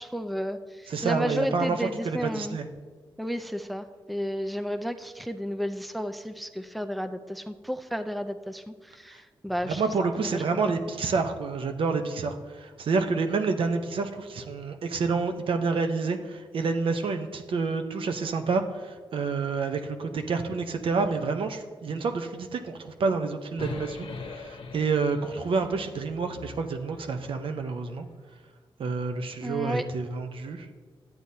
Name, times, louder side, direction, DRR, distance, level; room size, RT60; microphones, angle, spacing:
voice 1, 0.0-2.6 3.2-9.8 10.2-10.4 29.4-29.8, equal, ahead, 9 dB, 0.4 m, -32 dB
voice 2, 0.9-2.7 9.6-28.1 28.8-30.7, right 4 dB, 75° right, 6 dB, 0.8 m, -28 dB
sound 1, 23.6-27.8, left 4 dB, 75° left, 0.8 m, -42 dB
11.5 x 8.9 x 2.8 m, 1.5 s
cardioid pair, 75°, 9 cm